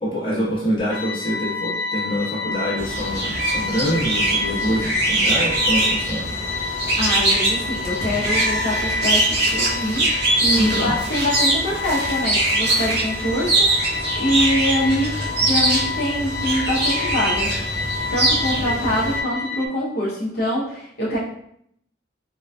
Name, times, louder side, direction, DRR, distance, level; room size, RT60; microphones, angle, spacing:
voice 1, 0.0-6.3 10.6-10.9, equal, 25° left, -7 dB, 0.9 m, -25 dB
sound 1, 0.9-19.7, left 4 dB, 90° left, 0.4 m, -29 dB
sound 2, 2.8-19.2, right 2 dB, 55° right, 0.8 m, -22 dB
voice 2, 7.0-17.8 18.1-21.2, equal, 55° left, -7 dB, 0.7 m, -25 dB
3.7 x 2.5 x 2.2 m, 0.71 s
head